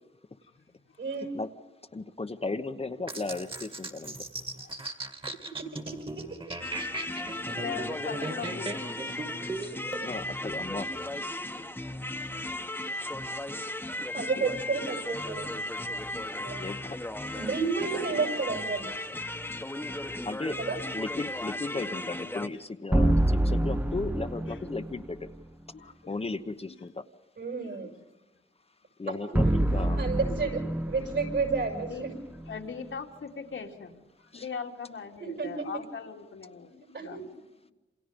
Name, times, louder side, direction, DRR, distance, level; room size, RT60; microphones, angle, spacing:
voice 1, 1.0-1.3 5.4-6.0 14.1-15.6 16.4-16.6 17.3-19.0 20.6-20.8 27.4-28.0 30.0-32.1 35.2-35.7 36.9-37.2, right 4 dB, 65° right, 4 dB, 6.9 m, -31 dB
voice 2, 1.9-4.2 6.6-7.1 9.4-10.9 14.2-14.4 16.5-17.0 18.1-18.3 20.2-20.6 20.9-25.3 25.8-27.0 29.0-30.0 34.3-34.5, left 3 dB, 30° left, 8 dB, 1.1 m, -36 dB
sound 1, 3.1-10.0, right 2 dB, 25° right, 2.2 m, -38 dB
sound 2, 6.6-22.5, left 1 dB, 10° left, 1.3 m, -36 dB
voice 3, 7.5-9.3 11.4-11.6 12.9-13.1 15.6-15.7 25.7-26.1 27.6-27.9 31.8-32.1 32.5-37.4, left 6 dB, 85° left, 1 dB, 2.9 m, -41 dB
sound 3, 22.9-25.1 29.3-32.6, right 1 dB, 10° right, 0.8 m, -27 dB
28.0 x 28.0 x 5.3 m, 1.0 s
wide cardioid pair, 105°, 20 cm